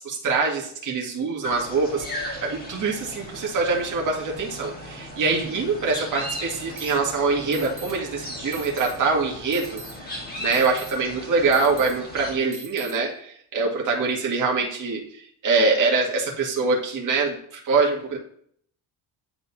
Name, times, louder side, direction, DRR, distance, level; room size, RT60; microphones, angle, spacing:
voice 1, 0.0-10.1 10.4-18.2, right 4 dB, 45° right, -2 dB, 2.1 m, -24 dB
sound 1, 1.4-12.4, left 1 dB, 20° left, 1.8 m, -37 dB
sound 2, 6.8-6.9 7.5-7.9 8.5-8.9 9.5-9.9 10.5-10.9 11.5-11.9 12.5-12.9, right 2 dB, 15° right, 0.9 m, -40 dB
10.5 x 3.9 x 2.8 m, 0.65 s
cardioid pair, 170°, 41 cm